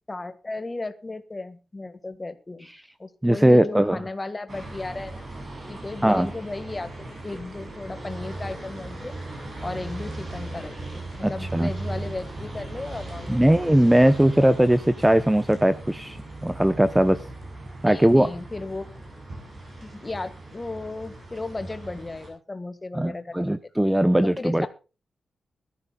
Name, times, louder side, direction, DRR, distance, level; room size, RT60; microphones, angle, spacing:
voice 1, 0.1-2.7 3.0-5.3 5.7-6.9 7.2-9.1 9.6-13.6 17.8-18.9 19.9-23.6 24.2-24.7, left 2 dB, 20° left, 11 dB, 1.6 m, -35 dB
voice 2, 3.2-4.0 6.0-6.3 11.2-11.7 13.3-17.2 17.8-18.3 22.9-24.7, right 1 dB, 5° right, 11 dB, 0.7 m, -19 dB
sound 1, 4.5-22.3, right 2 dB, 40° right, 8.0 m, -38 dB
23.0 x 14.0 x 2.3 m, 0.33 s
wide cardioid pair, 140°, 0 cm